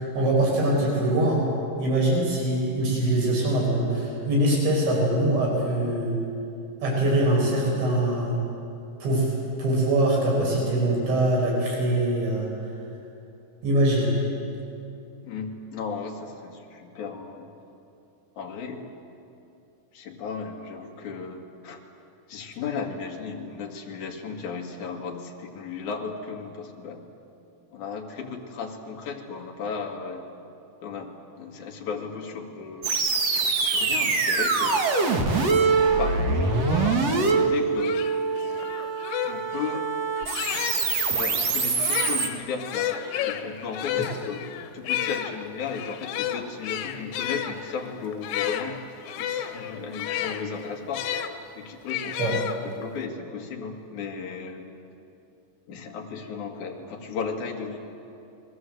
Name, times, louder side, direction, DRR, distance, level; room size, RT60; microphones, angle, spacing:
voice 1, 0.1-1.4 1.8-6.2 6.8-8.4 9.0-9.3 9.6-12.5 13.6-14.1 44.0-44.1 52.2-52.4, right 1 dB, 80° right, -3 dB, 8.1 m, -23 dB
voice 2, 15.2-17.5 18.4-18.9 19.9-21.8 22.3-27.0 27.7-30.3 30.8-32.9 33.6-34.9 36.0-38.0 39.3-39.9 41.1-44.5 44.7-48.7 49.2-51.0 51.5-52.2 52.8-54.6 55.7-57.8, left 5 dB, 50° left, 1 dB, 3.1 m, -35 dB
sound 1, 32.8-42.3, right 4 dB, 50° right, 2.1 m, -24 dB
sound 2, 37.4-37.5 37.8-41.0 41.7-51.3 51.9-53.0, left 10 dB, 90° left, 3.6 m, -32 dB
29.5 x 21.5 x 8.0 m, 2.7 s
omnidirectional pair, 5.1 m